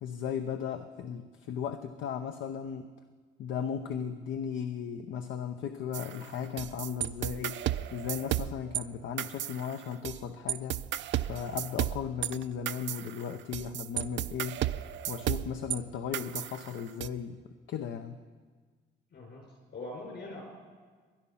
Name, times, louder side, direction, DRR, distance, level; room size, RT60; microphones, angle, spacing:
voice 1, 0.0-2.9 3.4-7.6 7.9-10.8 11.3-14.7 15.1-17.4 17.7-18.2, left 7 dB, 80° left, 8 dB, 0.8 m, -36 dB
sound 1, 5.9-8.8 9.2-10.2 10.5-15.8 16.1-17.1, right 12 dB, 70° right, 0.5 m, -34 dB
voice 2, 19.1-20.4, left 2 dB, 65° left, 0 dB, 6.0 m, -43 dB
20.5 x 11.0 x 5.7 m, 1.5 s
cardioid pair, 90°, 20 cm